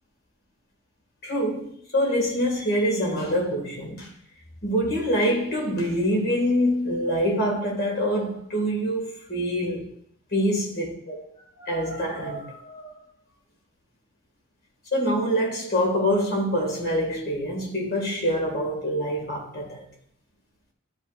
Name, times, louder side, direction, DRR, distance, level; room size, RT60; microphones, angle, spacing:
voice 1, 1.2-4.2 4.6-9.9 10.3-11.2 11.6-12.9 14.9-19.9, equal, 50° left, 2.0 m, -25 dB
12.5 x 5.5 x 2.5 m
head